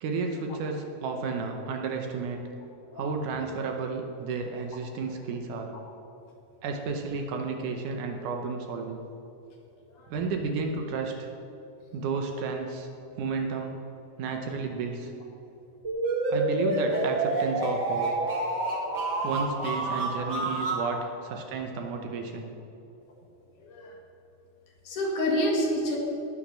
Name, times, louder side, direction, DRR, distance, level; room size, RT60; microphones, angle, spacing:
voice 1, 0.0-2.5 3.0-5.7 6.6-9.0 10.1-11.3 11.9-12.9 13.2-13.8 14.2-15.1 16.3-18.1 19.2-22.5, right 4 dB, 70° right, 3 dB, 2.2 m, -32 dB
sound 1, 15.8-20.8, right 2 dB, 30° right, 2.6 m, -28 dB
voice 2, 24.8-26.0, equal, 65° left, 0 dB, 3.1 m, -28 dB
18.5 x 6.5 x 6.3 m, 2.9 s
omnidirectional pair, 4.1 m